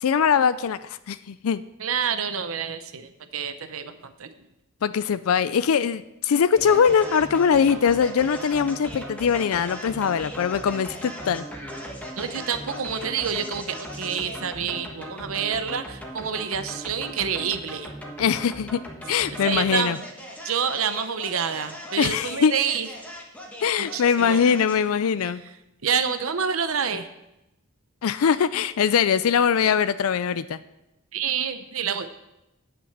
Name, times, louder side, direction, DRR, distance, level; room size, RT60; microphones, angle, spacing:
voice 1, 0.0-1.6 4.8-11.4 18.2-18.8 19.1-20.0 22.0-22.5 23.6-25.4 28.0-30.6, left 7 dB, 80° left, 14 dB, 0.4 m, -22 dB
voice 2, 1.8-4.3 12.2-17.9 19.4-20.0 20.4-22.9 23.8-24.4 25.2-25.5 25.8-27.1 31.1-32.1, right 7 dB, 75° right, 10 dB, 0.7 m, -28 dB
sound 1, 6.6-24.9, equal, 5° left, 1.5 m, -38 dB
10.0 x 6.1 x 8.0 m, 0.91 s
head